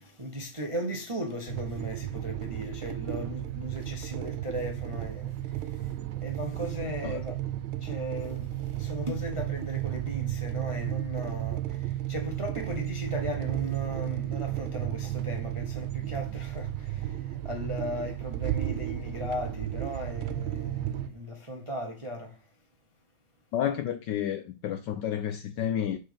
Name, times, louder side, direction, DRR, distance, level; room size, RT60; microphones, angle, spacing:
voice 1, 0.0-6.0 6.2-22.5, equal, 30° right, 0.5 m, -37 dB
sound 1, 1.5-21.1, right 13 dB, 80° right, 1.5 m, -33 dB
voice 2, 23.5-26.0, left 10 dB, 75° left, 1.0 m, -30 dB
6.4 x 4.3 x 5.1 m
omnidirectional pair, 2.3 m